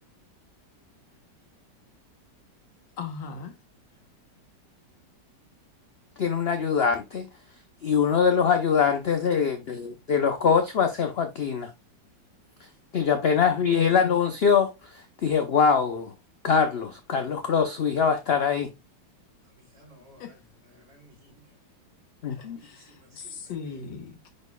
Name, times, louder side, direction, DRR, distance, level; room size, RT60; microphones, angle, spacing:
voice 1, 3.0-3.5 20.2-20.4 22.3-24.3, left 5 dB, 85° left, 1.8 m, -39 dB
voice 2, 6.2-7.3 7.8-11.7 12.9-16.1 16.4-18.7 22.2-22.6, left 6 dB, 60° left, 0.6 m, -23 dB
voice 3, 19.5-20.2 20.9-21.5 22.6-23.4, right 1 dB, 40° right, 4.4 m, -56 dB
10.0 x 4.3 x 2.3 m
omnidirectional pair, 1.9 m